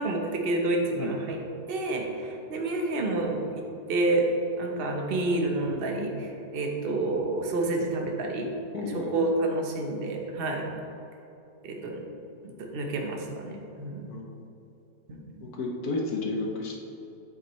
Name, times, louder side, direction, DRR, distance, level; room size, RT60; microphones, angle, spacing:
voice 1, 0.0-1.4 1.7-4.3 4.6-8.5 8.9-10.7 11.6-12.0 12.4-14.1 15.1-15.5, right 2 dB, 40° right, 1 dB, 0.8 m, -29 dB
voice 2, 8.7-9.3 14.1-14.3 15.4-16.7, left 3 dB, 60° left, 0 dB, 1.2 m, -32 dB
8.8 x 7.9 x 3.1 m, 2.8 s
omnidirectional pair, 2.1 m